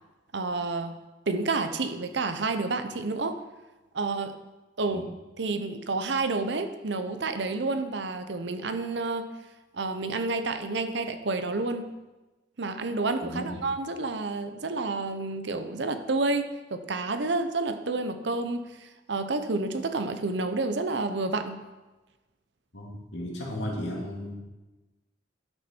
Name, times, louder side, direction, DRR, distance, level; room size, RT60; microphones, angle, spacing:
voice 1, 0.3-1.0 1.3-3.4 3.9-4.4 4.8-5.0 5.4-9.3 9.7-11.9 12.6-21.6, right 3 dB, 65° right, 9 dB, 0.8 m, -29 dB
voice 2, 13.2-13.6 22.7-24.3, left 1 dB, 70° left, -2 dB, 2.4 m, -35 dB
12.0 x 6.2 x 4.5 m, 1.1 s
head